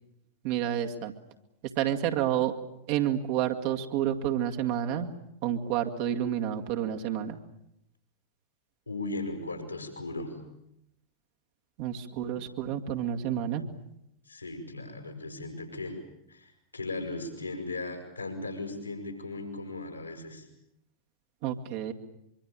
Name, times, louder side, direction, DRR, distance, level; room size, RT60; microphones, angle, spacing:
voice 1, 0.4-1.1 1.8-2.5 2.9-5.1 5.4-7.4 11.8-13.6 21.4-21.9, right 10 dB, 45° right, 3 dB, 2.2 m, -29 dB
voice 2, 8.9-10.3 14.3-16.0 16.3-20.5, left 2 dB, 85° left, 4 dB, 6.7 m, -37 dB
24.5 x 24.5 x 8.8 m, 0.81 s
figure-of-eight pair, 90°, 0 cm